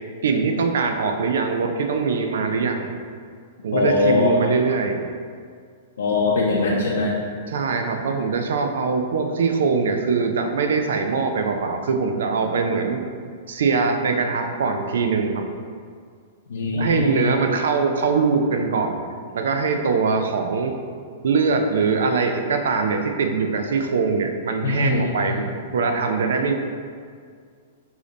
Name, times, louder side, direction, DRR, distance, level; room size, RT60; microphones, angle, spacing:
voice 1, 0.2-2.9 3.6-5.0 7.5-13.0 13.5-15.5 16.7-19.0 19.3-20.7 21.2-25.5 25.7-26.5, right 4 dB, 80° right, 5 dB, 0.5 m, -22 dB
voice 2, 3.7-4.7 6.0-7.1 16.5-17.3 24.6-25.4, left 3 dB, 85° left, -4 dB, 0.6 m, -22 dB
4.9 x 2.7 x 3.9 m, 2.1 s
hypercardioid pair, 135°, 0 cm